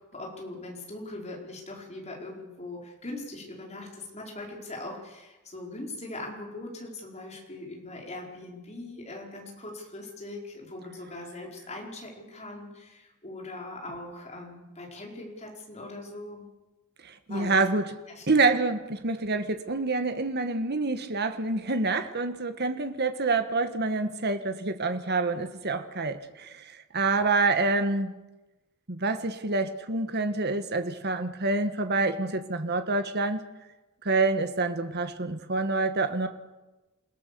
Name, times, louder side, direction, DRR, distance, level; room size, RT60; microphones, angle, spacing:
voice 1, 0.1-16.5 17.3-17.6 18.1-18.5, left 2 dB, 30° left, -1 dB, 4.9 m, -41 dB
voice 2, 17.0-17.9 18.3-28.2 28.9-33.4 34.0-36.3, right 3 dB, 45° right, 8 dB, 1.5 m, -27 dB
28.0 x 17.0 x 7.0 m, 1.1 s
head